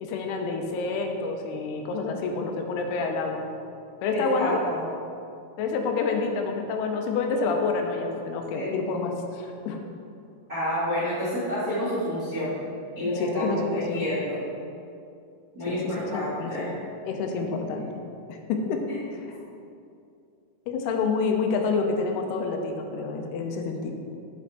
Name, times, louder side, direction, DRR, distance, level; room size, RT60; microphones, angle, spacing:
voice 1, 0.0-3.4 4.0-4.6 5.6-9.8 13.0-14.1 15.7-16.7 17.1-17.9 18.3-18.8 20.7-23.9, left 4 dB, 90° left, 3 dB, 2.7 m, -28 dB
voice 2, 4.1-4.8 8.5-8.7 10.5-12.5 12.9-13.4 13.7-14.4 15.5-16.7, equal, 50° right, -11 dB, 1.0 m, -29 dB
8.3 x 4.4 x 4.7 m, 2.5 s
omnidirectional pair, 4.7 m